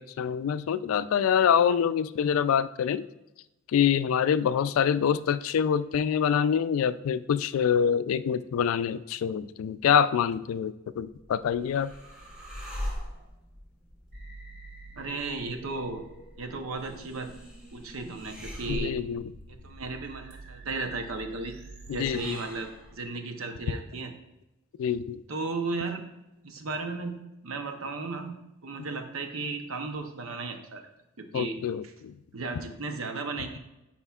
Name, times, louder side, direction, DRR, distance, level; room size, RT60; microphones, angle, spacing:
voice 1, 0.0-3.0 3.7-11.9 18.7-19.2 22.0-22.4 24.8-25.2 31.3-32.1, left 8 dB, 90° left, 14 dB, 0.3 m, -25 dB
sound 1, 11.1-23.0, equal, 5° right, 1.6 m, -43 dB
sound 2, 14.1-22.1, right 2 dB, 50° right, 1.3 m, -48 dB
voice 2, 15.0-16.0 16.4-17.3 17.7-19.0 19.5-21.6 21.9-24.1 25.3-26.0 26.4-30.8 31.2-31.6 32.3-33.6, right 3 dB, 85° right, 6 dB, 0.8 m, -35 dB
9.8 x 4.3 x 2.3 m, 0.95 s
head